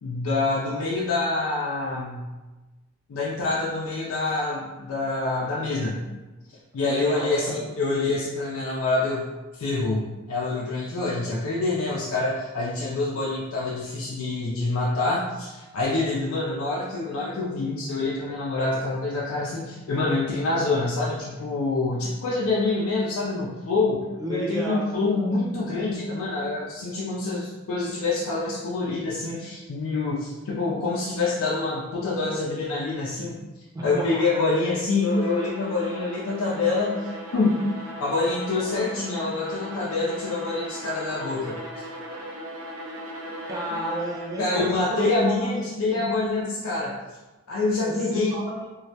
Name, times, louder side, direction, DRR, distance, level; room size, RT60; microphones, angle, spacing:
voice 1, 0.0-2.2 3.1-6.0 6.7-9.3 9.5-33.4 33.8-37.0 37.3-37.5 38.0-41.9 44.4-47.0 47.5-48.4, left 3 dB, 75° left, -6 dB, 0.4 m, -26 dB
voice 2, 6.8-8.1 24.2-25.3 33.7-34.5 43.5-46.0 47.9-48.7, right 1 dB, 15° right, -4 dB, 0.4 m, -33 dB
Bowed string instrument, 35.0-44.5, equal, 80° right, 0.5 m, -38 dB
2.2 x 2.1 x 2.7 m, 1.2 s
head